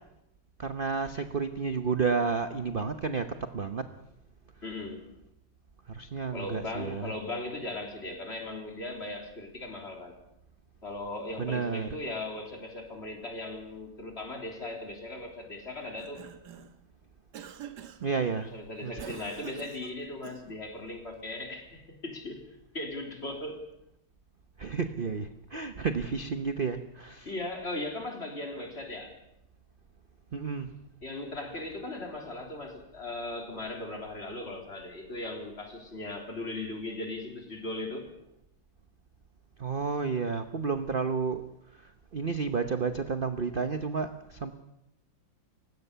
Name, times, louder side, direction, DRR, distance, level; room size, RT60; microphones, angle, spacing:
voice 1, 0.6-3.9 5.9-7.1 11.4-11.9 18.0-18.5 18.8-19.1 24.6-27.3 30.3-30.7 39.6-41.4 41.7-44.5, right 5 dB, 40° right, 9 dB, 0.7 m, -31 dB
voice 2, 4.6-5.0 6.3-10.1 10.8-16.3 18.5-22.4 22.7-23.6 27.2-29.1 31.0-38.1, left 2 dB, 30° left, 2 dB, 3.9 m, -38 dB
Cough, 15.8-16.8 17.3-18.2 19.0-20.7, right 9 dB, 60° right, 1.6 m, -46 dB
29.5 x 16.5 x 6.9 m, 0.85 s
omnidirectional pair, 2.2 m